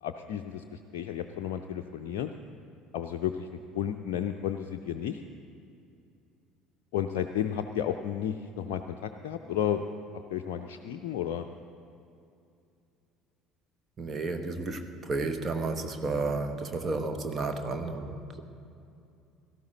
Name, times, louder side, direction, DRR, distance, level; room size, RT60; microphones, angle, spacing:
voice 1, 0.0-2.3 2.9-5.2 6.9-9.8 10.3-11.4, left 10 dB, 60° left, 4 dB, 0.5 m, -32 dB
voice 2, 14.0-18.4, right 3 dB, 30° right, 7 dB, 1.2 m, -32 dB
17.5 x 14.0 x 4.0 m, 2.6 s
figure-of-eight pair, 60°, 0 cm